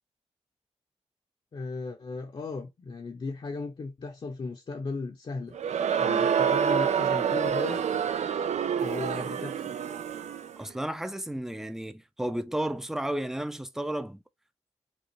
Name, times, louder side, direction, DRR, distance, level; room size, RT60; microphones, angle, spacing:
voice 1, 1.5-5.6 6.0-8.0 8.8-9.7, left 3 dB, 45° left, 0.7 m, -36 dB
Crowd, 5.5-10.6, right 8 dB, 85° right, 0.5 m, -27 dB
voice 2, 10.6-14.2, right 1 dB, 5° right, 0.4 m, -33 dB
5.3 x 2.4 x 3.0 m
wide cardioid pair, 125°, 12 cm